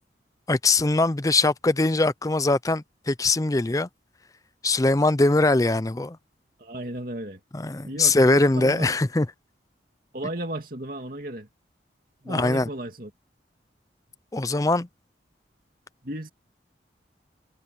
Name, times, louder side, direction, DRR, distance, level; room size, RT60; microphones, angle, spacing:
voice 1, 0.5-3.9 4.6-6.2 7.5-9.3 12.3-12.7 14.3-14.9, left 2 dB, 20° left, 0.5 m, -22 dB
voice 2, 6.6-7.4 7.8-9.0 10.1-11.5 12.2-13.1 16.0-16.3, right 1 dB, 50° right, 2.5 m, -34 dB
head